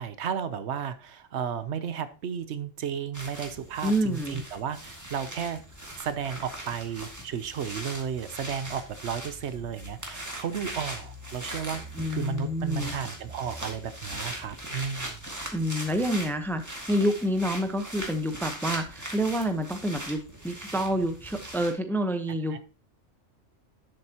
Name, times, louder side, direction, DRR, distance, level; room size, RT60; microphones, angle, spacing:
voice 1, 0.0-5.6 6.0-11.8 12.1-15.2 22.5-22.6, right 7 dB, 70° right, 13 dB, 1.0 m, -33 dB
sound 1, 3.1-21.7, right 1 dB, 15° right, 1.9 m, -40 dB
voice 2, 3.8-4.4 12.0-12.9 15.5-22.6, equal, ahead, 7 dB, 0.7 m, -28 dB
10.5 x 7.8 x 2.9 m, 0.33 s
omnidirectional pair, 1.2 m